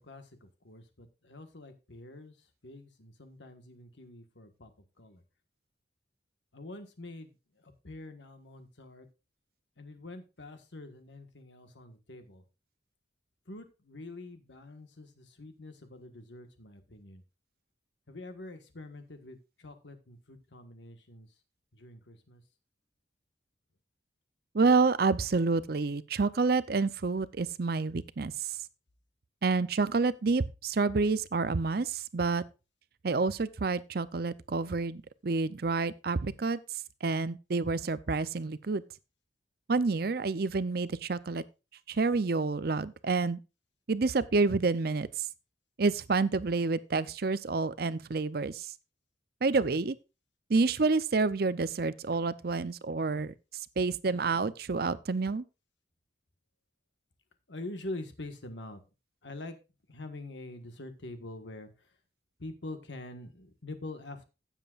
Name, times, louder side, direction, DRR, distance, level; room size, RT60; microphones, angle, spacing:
voice 1, 0.0-2.4 2.6-4.7 5.0-5.2 6.5-7.3 7.6-9.1 9.8-12.4 13.5-17.2 18.1-21.3 21.7-22.4 57.5-58.8 59.2-59.6 59.9-61.9 62.4-64.2, left 2 dB, 75° left, 1.5 m, -45 dB
voice 2, 24.5-28.6 29.4-32.4 33.0-36.6 37.0-38.8 39.7-41.4 41.9-43.4 43.9-45.3 45.8-48.7 49.4-50.0 50.5-53.3 53.8-55.4, right 4 dB, 55° right, 0.5 m, -28 dB
16.0 x 7.5 x 2.5 m
head